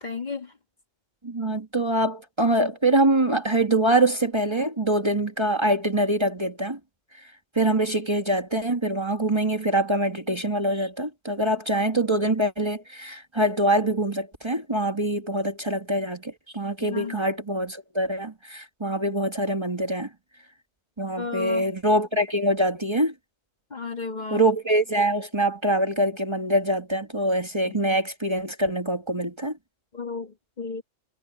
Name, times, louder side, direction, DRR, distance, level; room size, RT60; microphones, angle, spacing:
voice 1, 0.0-0.5 16.8-17.2 21.2-21.7 23.7-24.4 27.7-27.8 29.9-30.8, left 4 dB, 40° left, 1.8 m, -33 dB
voice 2, 1.2-6.8 7.6-20.1 21.0-23.1 24.3-29.5, right 1 dB, 25° right, 1.7 m, -24 dB
omnidirectional pair, 1.2 m